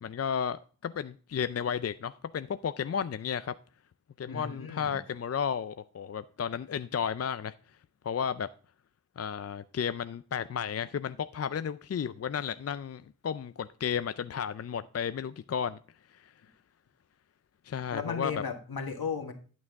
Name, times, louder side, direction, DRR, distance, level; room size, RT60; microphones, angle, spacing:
voice 1, 0.0-3.5 4.2-7.5 8.0-8.5 9.2-15.8 16.1-16.3 17.6-18.4, left 7 dB, 40° left, 0.4 m, -33 dB
voice 2, 4.3-5.0 17.9-19.3, left 5 dB, 70° left, 1.7 m, -35 dB
11.0 x 6.2 x 3.5 m
cardioid pair, 40°, 37 cm